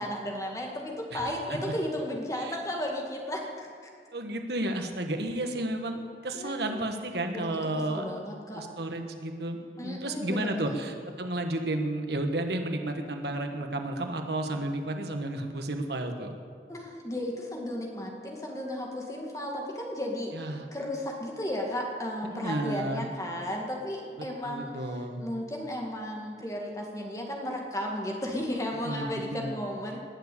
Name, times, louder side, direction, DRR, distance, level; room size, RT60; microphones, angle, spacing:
voice 1, 0.0-3.7 6.3-6.8 7.3-7.5 7.9-8.6 9.8-10.7 16.7-20.4 20.7-24.7 25.2-30.0, left 1 dB, 20° left, 0 dB, 2.0 m, -34 dB
voice 2, 1.1-1.6 2.4-2.6 4.1-8.2 8.5-16.3 20.3-20.7 22.2-23.1 24.4-25.3 28.8-29.5, right 1 dB, 70° right, 5 dB, 1.4 m, -32 dB
20.5 x 7.4 x 8.4 m, 2.2 s
head